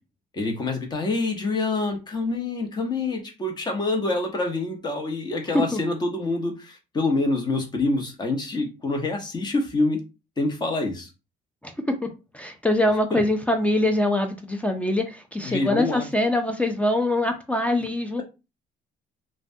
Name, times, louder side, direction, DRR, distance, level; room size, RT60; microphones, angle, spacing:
voice 1, 0.3-10.0 10.4-11.1 13.1-13.2 15.4-16.1 18.2-18.3, left 2 dB, 25° left, 0.9 m, -26 dB
voice 2, 11.6-12.1 12.3-18.2, left 1 dB, 10° left, 0.4 m, -23 dB
3.2 x 2.2 x 2.6 m
cardioid pair, 110°, 17 cm